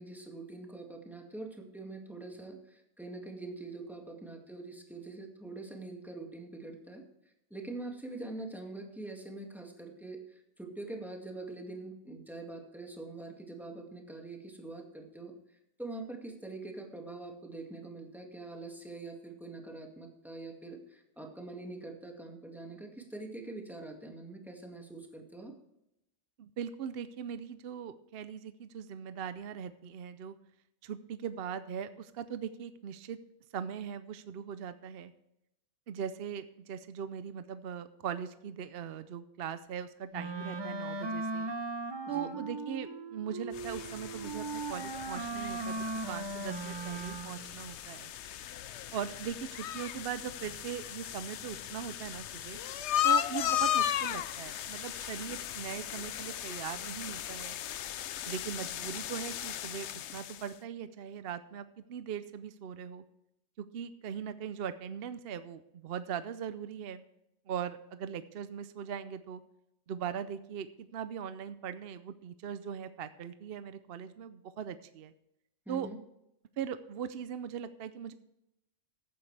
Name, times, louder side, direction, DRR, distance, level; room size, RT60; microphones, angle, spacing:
voice 1, 0.0-7.0 7.5-15.3 15.8-25.5 42.1-42.4 75.7-76.0, right 2 dB, ahead, 1 dB, 1.9 m, -44 dB
voice 2, 26.4-30.3 30.8-33.2 33.5-35.1 35.9-41.5 42.1-48.1 48.9-52.6 53.0-57.6 58.2-63.0 63.6-67.0 67.5-69.4 69.9-75.1 75.7-75.9 76.6-78.1, right 8 dB, 55° right, 12 dB, 0.7 m, -40 dB
Wind instrument woodwind instrument, 40.1-47.6, right 3 dB, 25° right, 0.7 m, -38 dB
sound 1, 43.5-60.5, left 10 dB, 65° left, 0.8 m, -36 dB
15.0 x 9.3 x 3.3 m, 0.83 s
omnidirectional pair, 1.4 m